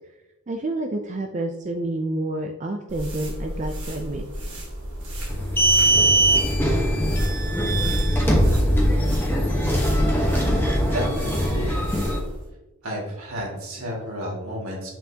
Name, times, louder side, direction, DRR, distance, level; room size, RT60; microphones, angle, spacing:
voice 1, 0.5-4.2, right 2 dB, 35° right, 4 dB, 0.4 m, -29 dB
sound 1, 2.9-12.5, equal, 55° right, 2.0 m, -32 dB
sound 2, 5.3-12.2, right 1 dB, 10° left, 1.0 m, -21 dB
voice 2, 10.2-10.5 10.9-11.9 12.8-14.9, equal, 70° right, -2 dB, 2.2 m, -32 dB
7.4 x 5.7 x 2.8 m, 0.99 s
head